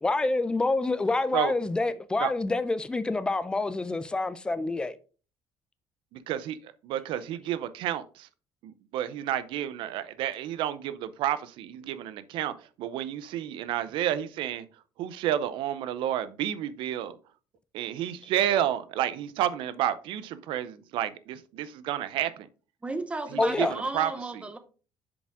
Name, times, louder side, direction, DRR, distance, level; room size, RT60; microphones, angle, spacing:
voice 1, 0.0-4.9 23.4-23.7, left 2 dB, 10° left, 0.4 m, -27 dB
voice 2, 6.1-8.3 8.6-17.2 17.7-22.5 23.3-24.4, right 11 dB, 75° right, 0.6 m, -31 dB
voice 3, 22.8-24.6, right 2 dB, 15° right, 0.8 m, -34 dB
7.1 x 5.0 x 3.6 m
cardioid pair, 155°, 9 cm